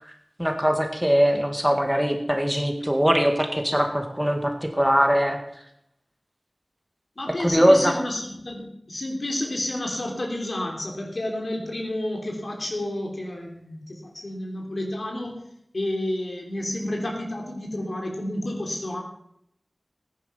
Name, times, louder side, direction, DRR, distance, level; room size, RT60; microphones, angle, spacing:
voice 1, 0.4-5.4 7.4-8.0, equal, 5° right, 4 dB, 1.9 m, -21 dB
voice 2, 7.2-15.4 15.7-19.0, left 1 dB, 70° left, 1 dB, 3.3 m, -30 dB
15.0 x 10.0 x 5.7 m, 0.74 s
wide cardioid pair, 60°, 0 cm